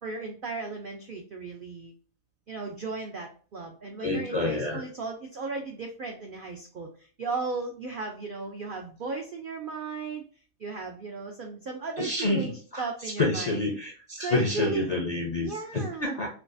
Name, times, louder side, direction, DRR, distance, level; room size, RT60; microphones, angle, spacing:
voice 1, 0.0-1.9 2.5-10.2 10.6-13.6 14.2-14.9 15.4-16.2, right 4 dB, 70° right, 2 dB, 0.5 m, -36 dB
voice 2, 4.0-4.8 12.0-12.8 13.2-16.3, left 2 dB, 55° left, 0 dB, 0.4 m, -28 dB
4.5 x 2.3 x 2.5 m, 0.41 s
omnidirectional pair, 1.5 m